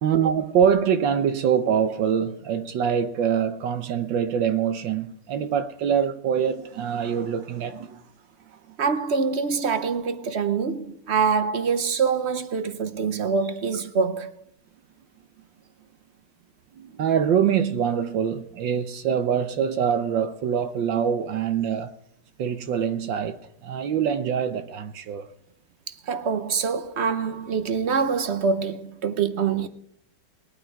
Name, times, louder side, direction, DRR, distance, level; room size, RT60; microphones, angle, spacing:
voice 1, 0.0-8.0 8.5-8.6 16.7-22.0 22.4-25.3, right 8 dB, 75° right, 1.6 m, -24 dB
voice 2, 8.8-14.3 25.9-29.7, right 5 dB, 50° right, 0.8 m, -25 dB
21.0 x 9.0 x 4.6 m
omnidirectional pair, 2.1 m